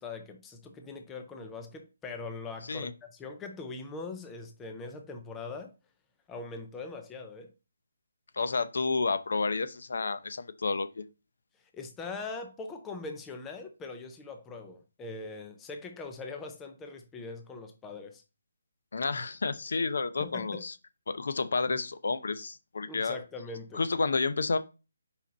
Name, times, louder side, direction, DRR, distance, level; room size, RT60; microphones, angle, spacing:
voice 1, 0.0-5.7 6.3-7.5 11.7-18.2 20.2-20.6 22.9-23.8, left 3 dB, 10° left, 0.5 m, -41 dB
voice 2, 8.3-11.0 18.9-20.7 21.1-23.2 23.7-24.6, left 4 dB, 60° left, 0.7 m, -30 dB
5.1 x 5.1 x 4.1 m
hypercardioid pair, 175°, 0 cm